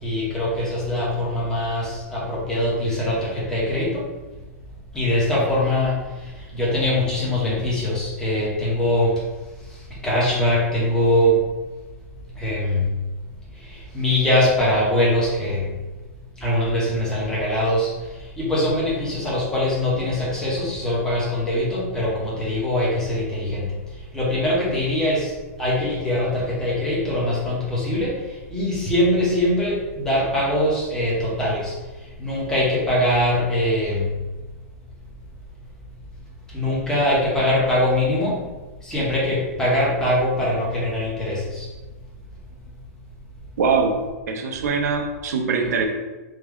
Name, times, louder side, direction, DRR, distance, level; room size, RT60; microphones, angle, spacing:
voice 1, 0.0-4.0 4.9-9.2 9.7-9.8 10.0-11.4 12.4-12.9 13.6-15.7 16.4-17.9 18.4-23.7 24.1-25.3 25.6-31.7 32.2-34.1 36.5-38.4 38.8-41.7, left 1 dB, 5° left, -6 dB, 1.0 m, -22 dB
voice 2, 43.6-44.0 44.3-45.9, right 5 dB, 80° right, 3 dB, 0.7 m, -22 dB
3.5 x 2.2 x 3.5 m, 1.2 s
supercardioid pair, 155°, 9 cm